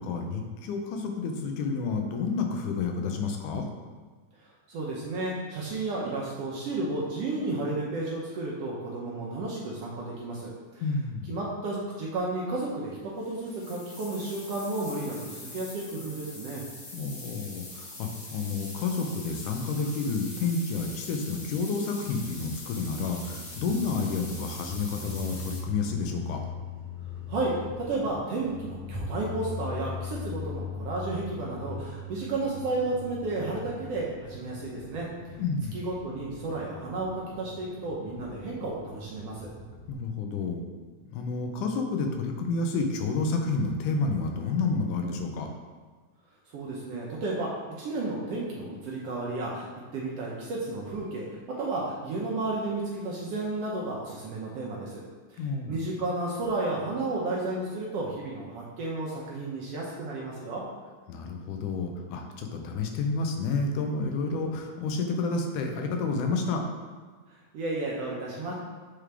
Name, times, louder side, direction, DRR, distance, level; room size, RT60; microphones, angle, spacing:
voice 1, 0.0-3.7 10.8-11.4 16.9-26.4 35.4-35.9 39.9-40.6 41.1-45.5 55.4-55.9 61.1-66.7, left 4 dB, 90° left, 3 dB, 2.3 m, -30 dB
voice 2, 4.4-10.8 11.3-16.6 27.3-35.4 35.7-39.5 46.5-55.0 55.3-60.6 67.3-68.5, right 2 dB, 70° right, -4 dB, 1.6 m, -32 dB
sound 1, 13.2-25.6, left 2 dB, 45° left, 2.3 m, -43 dB
sound 2, 22.1-39.9, left 4 dB, 30° right, 0.7 m, -41 dB
7.9 x 3.8 x 3.4 m, 1.5 s
omnidirectional pair, 3.5 m